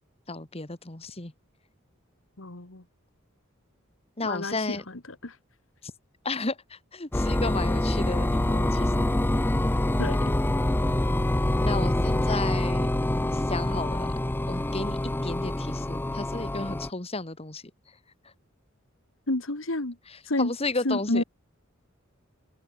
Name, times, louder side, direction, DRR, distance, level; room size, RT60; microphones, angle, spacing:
voice 1, 0.3-1.3 4.2-4.8 5.8-5.9 6.2-9.0 11.6-12.9 13.3-14.1 14.5-17.6 18.2-18.3 20.1-21.2, left 3 dB, 30° left, 2.2 m, -33 dB
voice 2, 2.4-2.8 4.2-4.8 5.2-5.4 10.0-10.3 19.3-20.0 20.3-20.5 20.8-21.2, left 2 dB, 70° left, 2.2 m, -29 dB
sound 1, 7.1-16.9, left 1 dB, 10° left, 0.5 m, -26 dB
open air
head